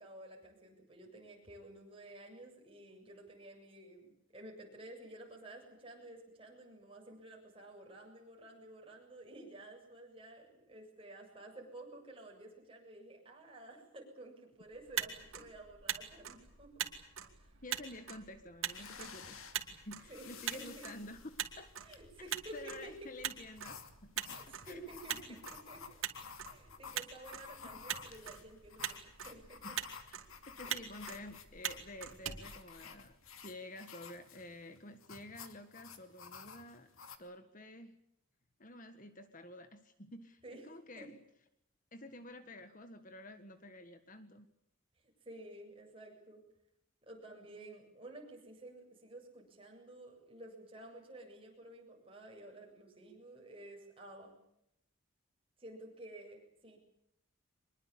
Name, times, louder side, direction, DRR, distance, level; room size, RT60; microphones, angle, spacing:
voice 1, 0.0-16.9 17.4-17.6 20.1-20.9 21.8-22.9 24.2-25.1 25.5-26.0 26.4-29.8 40.4-40.6 41.0-41.1 45.0-46.4 47.0-54.4 55.6-56.8, right 1 dB, 25° right, 0 dB, 7.8 m, -52 dB
Motor vehicle (road), 14.7-33.3, right 9 dB, 80° right, 2.8 m, -44 dB
voice 2, 17.6-19.4 19.7-21.3 21.6-21.7 22.5-25.4 27.6-27.8 29.6-29.8 30.5-33.2 33.4-36.9 37.2-38.0 38.6-41.2 41.9-44.5, left 1 dB, 40° left, 10 dB, 1.6 m, -50 dB
sound 1, 18.7-37.2, left 6 dB, 85° left, 2.6 m, -53 dB
24.5 x 21.5 x 8.6 m, 0.78 s
head